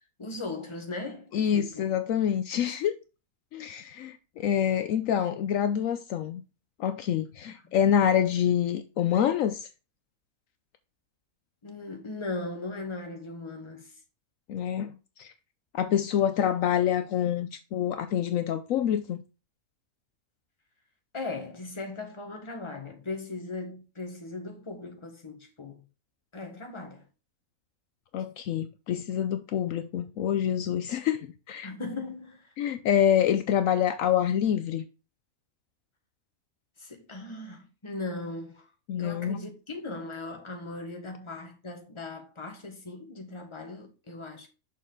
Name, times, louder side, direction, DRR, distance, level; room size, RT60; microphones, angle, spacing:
voice 1, 0.2-1.8 11.6-13.9 21.1-25.8 26.3-27.0 31.6-32.5 36.8-38.6 39.0-44.5, left 2 dB, 20° left, 1.4 m, -38 dB
voice 2, 1.3-3.0 3.5-6.4 6.8-9.7 14.5-15.3 15.7-19.2 28.1-31.7 32.6-34.8 38.9-39.4, left 9 dB, 75° left, 1.0 m, -26 dB
6.5 x 5.6 x 3.7 m
omnidirectional pair, 1.5 m